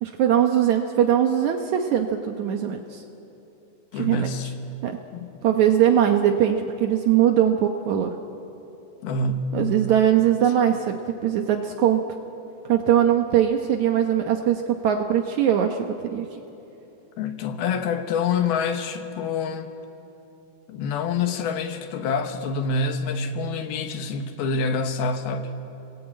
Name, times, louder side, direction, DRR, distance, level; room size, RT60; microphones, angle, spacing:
voice 1, 0.0-3.0 3.9-4.3 4.8-5.0 5.4-8.1 9.5-11.0 11.2-12.0 12.7-16.2, right 10 dB, 85° right, 4 dB, 1.6 m, -21 dB
voice 2, 3.9-4.5 5.1-5.3 9.0-9.6 10.4-10.5 17.2-19.7 20.7-25.5, left 4 dB, 70° left, 7 dB, 3.0 m, -26 dB
29.5 x 21.0 x 8.8 m, 3.0 s
omnidirectional pair, 4.9 m